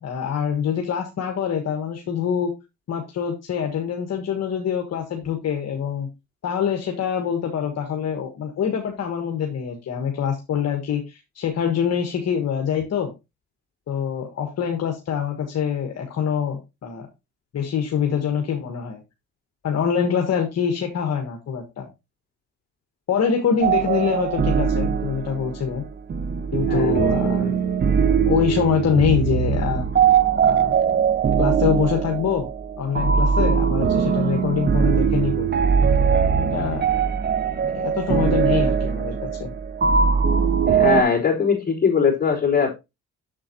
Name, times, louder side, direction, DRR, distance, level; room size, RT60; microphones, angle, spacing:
voice 1, 0.0-2.5 2.9-6.1 6.4-13.1 13.9-17.1 17.5-19.0 19.6-21.9 23.1-25.8 26.5-27.5 28.2-29.9 30.4-30.8 31.4-32.5 32.8-35.5 36.5-36.8 37.6-39.5, left 7 dB, 55° left, 1.4 m, -25 dB
sound 1, 23.6-41.0, right 7 dB, 35° right, 0.7 m, -21 dB
voice 2, 26.7-27.5 40.7-42.7, left 5 dB, 30° left, 3.6 m, -21 dB
7.5 x 7.0 x 2.8 m
cardioid pair, 90°, 30 cm